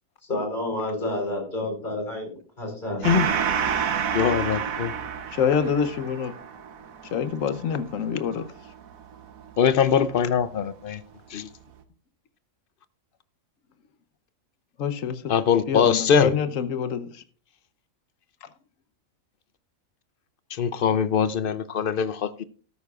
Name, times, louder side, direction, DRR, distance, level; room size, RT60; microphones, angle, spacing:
voice 1, 0.3-3.0, left 1 dB, 35° left, 4.6 m, -30 dB
Gong, 3.0-10.0, right 7 dB, 80° right, 1.4 m, -30 dB
voice 2, 4.1-4.9 9.6-11.0 11.3-11.5 15.3-16.3 20.5-22.4, left 7 dB, 55° left, 0.6 m, -22 dB
voice 3, 5.3-6.3 7.1-8.5 14.8-15.2 15.7-17.1, left 7 dB, 70° left, 1.2 m, -26 dB
13.5 x 12.5 x 2.4 m
omnidirectional pair, 1.4 m